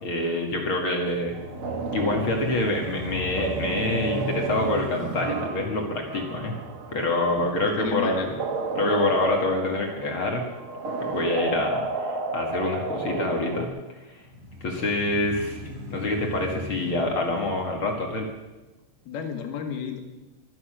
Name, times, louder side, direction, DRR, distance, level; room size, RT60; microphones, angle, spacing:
voice 1, 0.0-1.4 1.9-6.5 6.9-8.3 8.7-10.4 11.0-13.7 14.1-14.2 14.6-15.6 15.9-18.3, left 2 dB, 45° left, 1 dB, 1.9 m, -26 dB
sound 1, 1.1-9.1 9.6-9.7 14.2-18.7, equal, 35° right, 4.9 m, -38 dB
sound 2, 1.3-13.7, right 4 dB, 75° right, 1.2 m, -33 dB
voice 2, 7.3-8.3 19.1-20.0, left 7 dB, 70° left, 4 dB, 3.6 m, -32 dB
23.5 x 9.1 x 6.5 m, 1.1 s
omnidirectional pair, 4.7 m